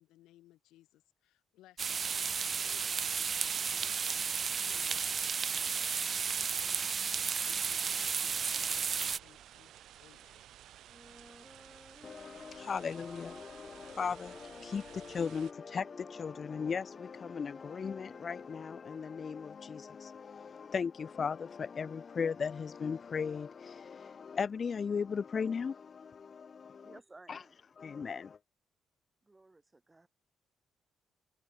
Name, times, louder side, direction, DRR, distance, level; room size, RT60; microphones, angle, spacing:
voice 1, 0.0-2.3 2.6-4.4 4.6-7.1 7.5-9.7 10.0-10.5, left 15 dB, 90° left, 4.0 m, -63 dB
sound 1, 1.8-9.2, right 6 dB, 45° right, 0.6 m, -33 dB
sound 2, 7.4-15.5, right 12 dB, 75° right, 4.1 m, -55 dB
Wind instrument woodwind instrument, 10.9-19.3, left 1 dB, 5° left, 3.9 m, -56 dB
voice 2, 12.0-27.0 27.3-27.4 27.8-28.4, left 6 dB, 45° left, 0.8 m, -37 dB
voice 3, 26.8-27.6 29.2-30.1, right 2 dB, 20° right, 2.3 m, -57 dB
cardioid pair, 90°, 0 cm